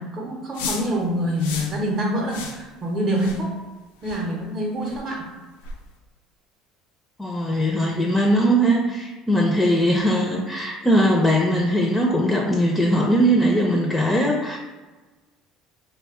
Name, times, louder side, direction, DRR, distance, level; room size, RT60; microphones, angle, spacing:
voice 1, 0.0-3.5 4.0-5.3, equal, 40° right, -2 dB, 0.7 m, -26 dB
sound 1, 0.5-0.9 1.4-1.8 2.3-2.6 3.1-3.4 4.0-4.2 4.9-5.0 5.6-5.8, left 4 dB, 80° left, 0.4 m, -33 dB
voice 2, 7.2-14.6, equal, 15° left, 0 dB, 0.4 m, -20 dB
2.3 x 2.2 x 3.5 m, 1.2 s
hypercardioid pair, 75°, 0 cm